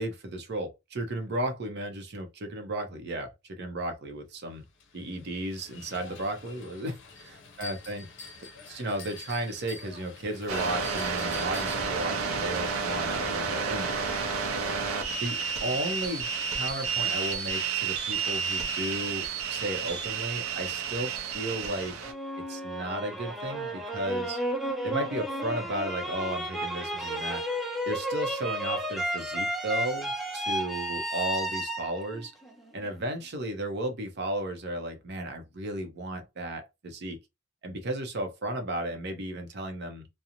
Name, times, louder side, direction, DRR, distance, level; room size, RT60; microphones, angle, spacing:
voice 1, 0.0-4.6 4.9-8.1 8.6-14.0 15.2-22.0 22.5-24.4 24.8-27.4 27.9-32.3 32.7-37.2 37.6-40.1, right 1 dB, 55° right, 0.6 m, -34 dB
sound 1, 4.6-11.9, left 3 dB, 60° left, 0.6 m, -46 dB
sound 2, 10.5-22.1, right 5 dB, 90° right, 0.6 m, -31 dB
sound 3, 22.0-33.0, equal, ahead, 0.4 m, -32 dB
2.5 x 2.0 x 2.8 m
head